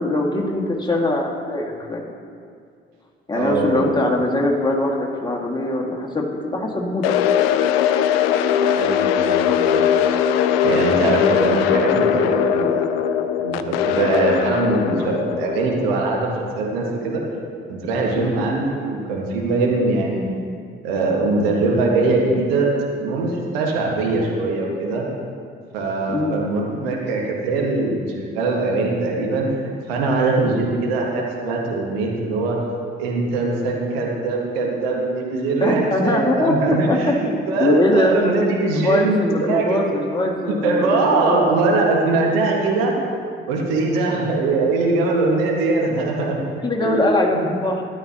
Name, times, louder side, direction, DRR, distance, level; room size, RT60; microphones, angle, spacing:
voice 1, 0.0-2.1 3.3-7.1 7.9-8.2 8.4-8.5 18.2-18.4 26.1-26.4 35.6-37.2 37.6-38.4 38.7-41.8 46.6-47.8, left 1 dB, 15° left, -2 dB, 2.0 m, -22 dB
voice 2, 3.3-3.9 8.7-10.2 10.6-13.0 13.4-17.2 17.7-20.4 20.8-25.0 25.7-32.6 33.0-39.8 40.5-43.0 43.5-46.4 46.8-47.1 47.3-47.4, right 3 dB, 75° right, -1 dB, 1.6 m, -22 dB
sound 1, 7.0-17.1, left 9 dB, 75° left, 0.5 m, -20 dB
13.0 x 11.0 x 2.9 m, 2.3 s
figure-of-eight pair, 50°, 30 cm